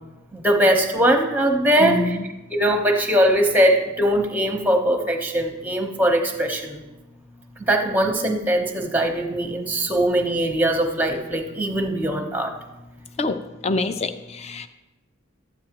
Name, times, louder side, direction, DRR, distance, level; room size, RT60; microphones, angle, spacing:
voice 1, 0.3-2.2 2.5-6.8 7.6-12.6, right 1 dB, 10° right, 3 dB, 0.8 m, -21 dB
voice 2, 1.8-2.3 13.2-13.4 13.6-14.7, left 3 dB, 30° left, 10 dB, 0.4 m, -25 dB
12.5 x 8.8 x 2.9 m, 1.0 s
head